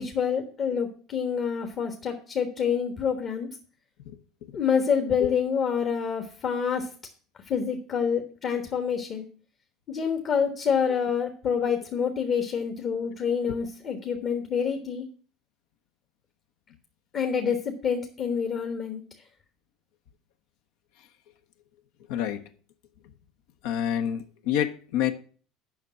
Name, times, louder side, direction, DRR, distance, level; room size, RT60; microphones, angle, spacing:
voice 1, 0.0-3.5 4.5-6.9 7.5-9.2 9.9-15.0 17.1-19.0, left 7 dB, 45° left, 1.4 m, -27 dB
voice 2, 22.1-22.4 23.6-25.1, left 10 dB, 70° left, 0.9 m, -27 dB
7.2 x 5.6 x 7.4 m
hypercardioid pair, 70°, 0 cm